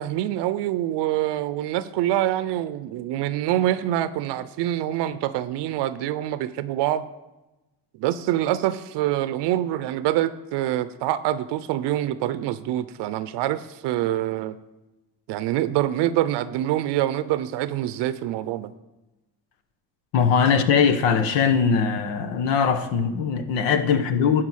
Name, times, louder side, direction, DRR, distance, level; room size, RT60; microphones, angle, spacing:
voice 1, 0.0-7.1 8.0-14.6 15.3-18.7, right 13 dB, 70° right, 0.6 m, -25 dB
voice 2, 20.1-24.4, left 6 dB, 80° left, 1.1 m, -21 dB
11.5 x 4.7 x 7.3 m
supercardioid pair, 85°, 44 cm